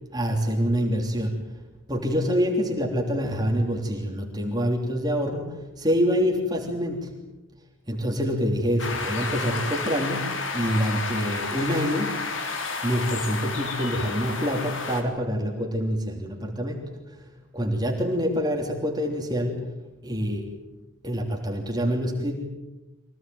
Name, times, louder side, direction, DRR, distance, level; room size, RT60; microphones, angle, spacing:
voice 1, 0.1-1.4 1.9-7.1 7.9-12.2 12.8-17.2 17.5-19.7 20.0-20.5 21.0-22.4, equal, 20° right, 1 dB, 3.2 m, -26 dB
sound 1, 8.8-15.0, left 4 dB, 70° left, 3.5 m, -31 dB
25.0 x 17.5 x 9.4 m, 1.0 s
head